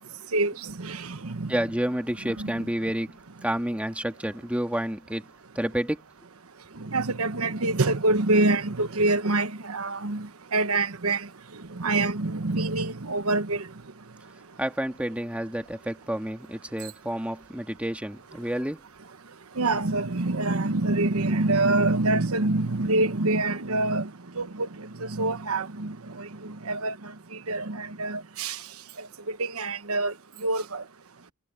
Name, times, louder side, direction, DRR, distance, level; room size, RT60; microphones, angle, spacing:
voice 1, 0.3-1.5 2.4-2.5 6.8-11.3 11.8-13.6 19.6-24.1 24.4-27.1 27.5-28.6 29.3-30.1 30.4-30.8, right 2 dB, 85° right, 1.1 m, -26 dB
voice 2, 1.5-5.3 5.6-6.0 14.6-18.8, right 1 dB, 5° right, 1.9 m, -30 dB
head